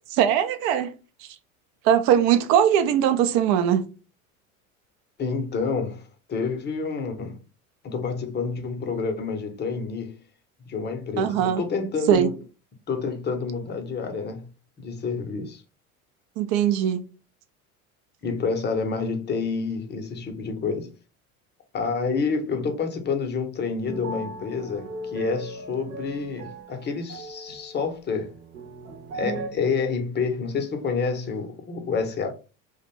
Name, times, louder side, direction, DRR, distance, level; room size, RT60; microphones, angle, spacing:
voice 1, 0.1-0.9 1.2-1.3 1.8-3.9 11.2-11.6 12.1-12.3 16.4-17.0, right 9 dB, 55° right, 0.5 m, -20 dB
voice 2, 5.2-7.4 7.8-10.2 10.6-12.3 12.9-14.5 14.8-15.6 18.2-20.9 21.7-28.3 29.1-32.3, left 5 dB, 25° left, 0.6 m, -28 dB
sound 1, 23.8-29.5, right 2 dB, 80° right, 0.9 m, -37 dB
2.5 x 2.2 x 3.0 m
hypercardioid pair, 75°, 42 cm